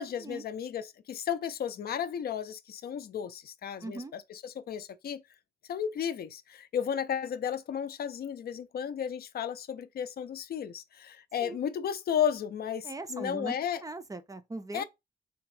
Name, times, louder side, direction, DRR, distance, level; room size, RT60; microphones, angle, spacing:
voice 1, 0.0-5.2 5.7-13.8 14.7-14.8, left 8 dB, 65° left, 0.4 m, -34 dB
voice 2, 3.8-4.1 11.4-11.6 12.8-14.8, right 2 dB, 20° right, 0.4 m, -40 dB
3.5 x 2.9 x 3.1 m
wide cardioid pair, 125°, 17 cm